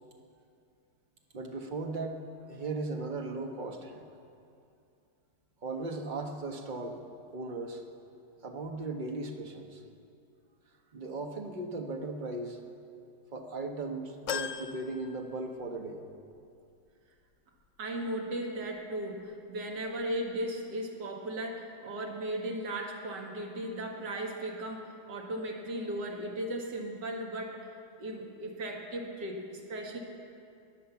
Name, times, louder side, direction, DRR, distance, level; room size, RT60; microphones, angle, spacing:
voice 1, 1.3-4.1 5.6-7.0 7.3-7.8 8.4-9.8 10.9-12.6 13.3-16.0, right 2 dB, 30° right, 3 dB, 1.1 m, -37 dB
sound 1, 14.3-15.9 16.3-16.4 17.6-17.7, left 8 dB, 80° left, 0.6 m, -39 dB
voice 2, 17.8-27.6 28.0-30.0, right 1 dB, 75° right, 1 dB, 2.3 m, -36 dB
20.5 x 7.6 x 7.1 m, 2.5 s
omnidirectional pair, 1.9 m